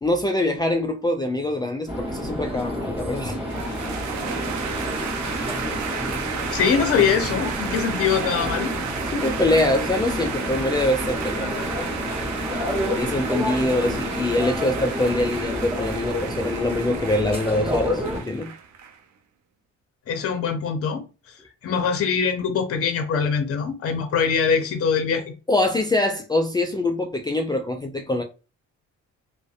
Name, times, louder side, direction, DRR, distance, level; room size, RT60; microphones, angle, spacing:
voice 1, 0.0-3.4 9.1-11.6 12.9-18.5 25.5-28.2, left 1 dB, 15° left, 0.3 m, -24 dB
sound 1, 1.9-18.2, equal, 20° right, 1.2 m, -29 dB
sound 2, 3.5-19.0, right 7 dB, 70° right, 0.6 m, -33 dB
voice 2, 6.5-8.7 20.1-25.2, left 6 dB, 50° left, 0.7 m, -23 dB
2.5 x 2.1 x 2.4 m
cardioid pair, 90°, 30 cm